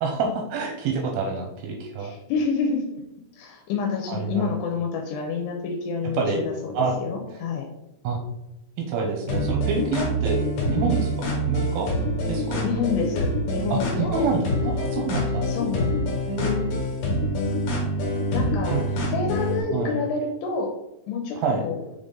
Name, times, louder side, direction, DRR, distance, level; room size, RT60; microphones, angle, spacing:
voice 1, 0.0-2.1 4.1-4.5 6.1-6.4 6.7-6.9 7.3-7.4 8.0-8.2 8.8-10.4 10.7-11.9 12.3-12.6 13.7-15.4 16.3-16.7 18.7-18.8 19.7-20.0 21.4-21.6, right 4 dB, 80° right, 2 dB, 2.3 m, -27 dB
voice 2, 2.0-3.0 3.4-7.7 12.6-14.3 15.5-15.9 18.3-20.7 21.1-21.8, left 5 dB, 80° left, 3 dB, 2.8 m, -28 dB
sound 1, 9.3-19.6, equal, 60° left, 2.2 m, -26 dB
6.7 x 3.8 x 3.8 m, 0.88 s
omnidirectional pair, 4.9 m